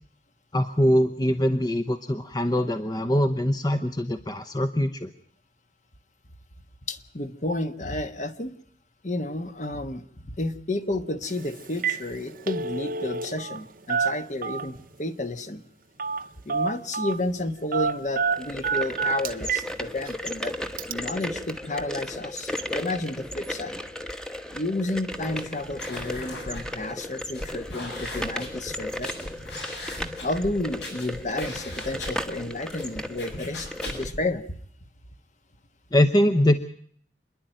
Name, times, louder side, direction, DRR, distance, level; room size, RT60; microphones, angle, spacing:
voice 1, 0.5-5.1 35.9-36.6, equal, 20° left, 9 dB, 0.8 m, -23 dB
voice 2, 6.9-8.6 9.0-15.6 16.4-20.5 20.9-23.8 24.5-29.1 30.2-34.6, left 2 dB, 40° left, 9 dB, 1.3 m, -31 dB
Telephone, 11.2-11.4 11.7-12.0 12.3-13.6 13.9-14.8 16.0-16.2 16.5-17.2 17.7-19.7 20.1-20.2 20.8-20.9, right 5 dB, 50° right, 0.8 m, -27 dB
sound 1, 18.2-34.1, left 1 dB, 5° left, 1.1 m, -35 dB
sound 2, 25.1-34.3, left 1 dB, 70° left, 8.0 m, -39 dB
27.5 x 11.0 x 9.0 m, 0.63 s
head